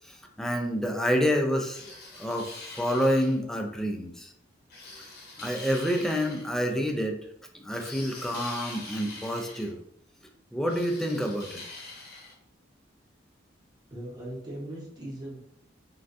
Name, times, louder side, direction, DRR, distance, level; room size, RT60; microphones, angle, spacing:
voice 1, 0.4-1.9 2.2-2.5 2.7-4.3 5.4-7.2 7.6-9.8 10.5-11.6, equal, ahead, 2 dB, 0.4 m, -28 dB
sound 1, 1.7-3.4 4.7-6.5 7.7-9.7 10.7-12.3, left 3 dB, 55° left, 1.0 m, -44 dB
voice 2, 13.9-15.4, right 1 dB, 20° right, -4 dB, 1.0 m, -39 dB
3.3 x 2.4 x 2.6 m, 0.70 s
head